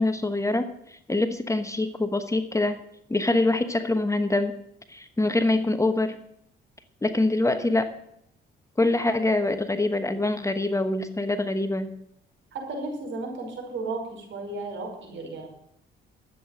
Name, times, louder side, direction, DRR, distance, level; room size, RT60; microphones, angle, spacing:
voice 1, 0.0-2.8 3.1-4.5 4.9-6.2 7.0-7.9 8.8-11.9, left 2 dB, 15° left, 9 dB, 1.1 m, -24 dB
voice 2, 12.5-15.5, right 2 dB, 70° right, 1 dB, 5.6 m, -34 dB
12.5 x 8.4 x 7.5 m, 0.75 s
cardioid pair, 90°, 20 cm